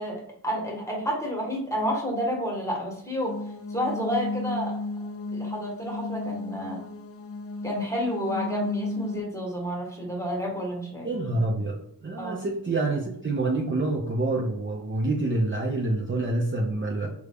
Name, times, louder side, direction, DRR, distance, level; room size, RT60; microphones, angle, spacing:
voice 1, 0.0-3.4 3.7-4.8 5.3-6.8 7.6-11.1 12.2-12.4, equal, 10° left, -2 dB, 1.2 m, -30 dB
sound 1, 3.2-9.2, left 2 dB, 40° left, 0.4 m, -34 dB
voice 2, 11.0-17.1, right 2 dB, 35° right, -2 dB, 0.6 m, -27 dB
3.6 x 2.2 x 3.4 m, 0.73 s
wide cardioid pair, 65°, 37 cm